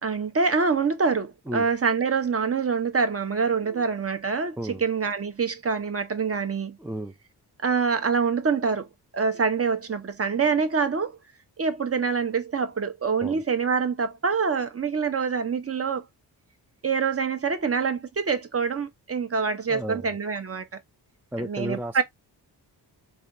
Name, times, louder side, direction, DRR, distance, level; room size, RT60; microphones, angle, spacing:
voice 1, 0.0-6.8 7.6-8.9 9.1-11.2 11.6-16.1 16.8-20.7 21.4-22.0, right 5 dB, 35° right, 0.9 m, -25 dB
voice 2, 6.8-7.1 13.2-13.4 19.7-20.1 21.3-22.0, equal, 5° right, 0.4 m, -33 dB
3.7 x 3.3 x 2.6 m
cardioid pair, 75°, 40 cm